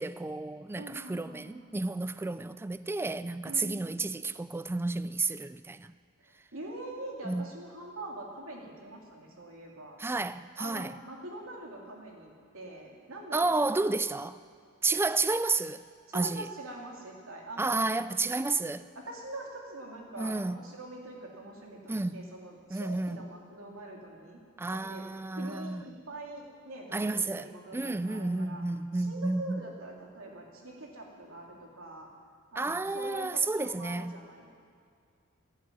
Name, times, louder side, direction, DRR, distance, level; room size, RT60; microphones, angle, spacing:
voice 1, 0.0-5.9 7.2-7.5 10.0-10.9 13.3-14.4 14.8-15.8 16.1-16.5 17.6-18.8 20.2-20.7 21.9-22.2 22.7-23.3 24.6-25.8 26.9-27.5 27.7-29.6 32.6-34.1, right 3 dB, 10° right, 0.3 m, -31 dB
voice 2, 0.7-1.6 3.4-3.9 6.2-10.0 10.6-13.6 16.1-17.7 18.9-24.4 24.7-25.1 25.3-25.8 26.1-28.6 28.9-32.1 32.5-34.5, right 1 dB, 80° right, 2.9 m, -44 dB
12.0 x 11.5 x 9.3 m
head